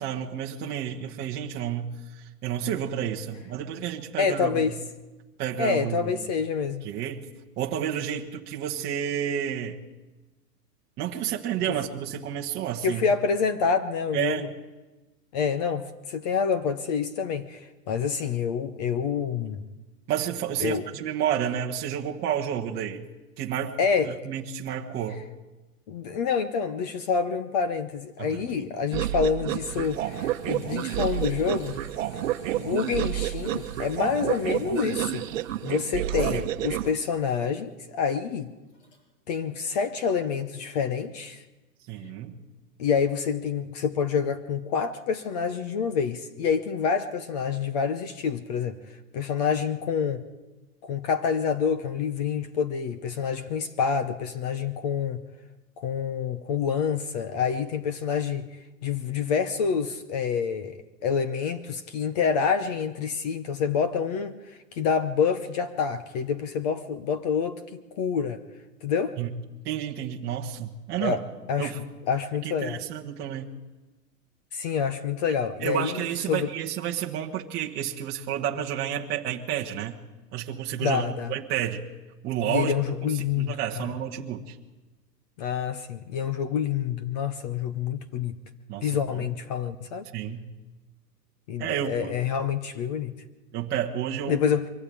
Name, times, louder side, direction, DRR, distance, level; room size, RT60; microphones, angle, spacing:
voice 1, 0.0-4.7 5.4-6.1 6.8-7.3 7.6-9.8 11.0-13.1 14.1-14.5 20.1-23.1 23.4-23.8 24.0-25.2 28.2-28.4 35.6-35.8 41.9-42.4 69.2-69.3 69.6-71.2 71.6-71.8 72.4-73.5 75.6-79.9 80.3-81.8 82.2-84.6 88.7-89.3 90.1-90.5 91.6-92.1 93.5-94.4, right 9 dB, 20° right, 1.2 m, -30 dB
voice 2, 4.2-4.7 5.6-6.9 11.7-11.8 12.8-14.5 15.3-19.6 20.6-20.8 23.8-24.1 25.9-31.8 32.5-35.2 35.6-38.5 39.3-41.4 42.8-48.8 49.1-50.2 50.8-55.2 55.8-58.5 58.8-68.4 68.8-69.2 71.0-71.2 71.5-71.7 72.1-72.8 74.5-76.5 80.8-81.3 82.4-83.9 85.4-88.4 88.8-90.0 91.5-93.1 94.3-94.7, left 6 dB, 25° left, 0.7 m, -27 dB
sound 1, 28.9-36.9, right 13 dB, 50° right, 1.1 m, -29 dB
sound 2, 29.7-36.9 37.3-37.4 38.6-39.0, left 2 dB, 90° left, 7.5 m, -55 dB
23.5 x 16.0 x 8.5 m
hypercardioid pair, 160°, 48 cm